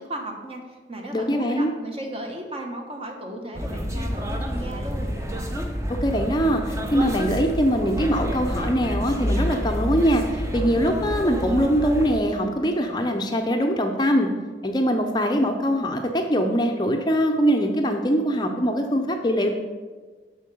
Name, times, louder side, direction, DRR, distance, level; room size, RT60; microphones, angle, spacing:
voice 1, 0.0-5.1, right 1 dB, 30° right, 2 dB, 1.2 m, -35 dB
voice 2, 1.1-1.7 6.0-14.3 14.6-19.5, equal, 25° left, 4 dB, 0.6 m, -22 dB
sound 1, 3.5-12.2, equal, 15° right, 0.8 m, -28 dB
7.4 x 5.8 x 6.8 m, 1.4 s
head